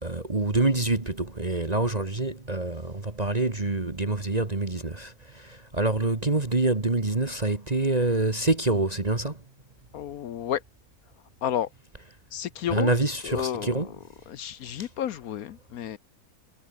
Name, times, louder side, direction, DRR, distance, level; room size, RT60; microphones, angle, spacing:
voice 1, 0.0-9.4 12.7-13.9, right 2 dB, 25° right, 1.9 m, -26 dB
voice 2, 9.9-10.6 11.4-11.7 12.3-12.9 13.2-13.9 14.3-16.0, left 10 dB, 70° left, 1.2 m, -31 dB
omnidirectional pair, 1.7 m